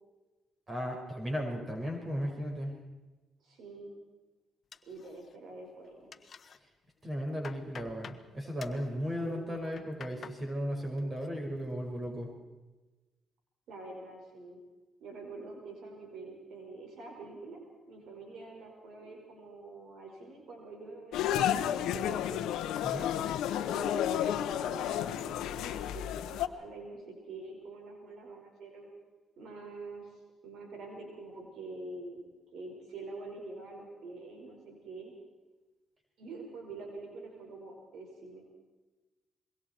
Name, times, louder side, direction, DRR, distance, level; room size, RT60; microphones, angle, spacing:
voice 1, 0.7-2.8 7.0-12.3 22.8-23.1, equal, 30° right, 1 dB, 5.2 m, -35 dB
voice 2, 3.4-3.9 4.9-6.1 9.2-9.7 13.7-14.6 15.0-17.6 17.9-22.4 23.6-28.9 29.4-32.2 32.5-35.1 36.2-38.5, right 3 dB, 75° right, 1 dB, 5.3 m, -46 dB
sound 1, 4.7-5.6 5.8-6.6 7.0-8.2 8.6-8.9 9.5-10.4 10.8-11.3 11.7-12.1, left 6 dB, 45° left, 1.3 m, -50 dB
sound 2, 21.1-26.5, left 11 dB, 85° left, 1.0 m, -31 dB
26.0 x 22.0 x 4.5 m, 1.2 s
cardioid pair, 90°, 0 cm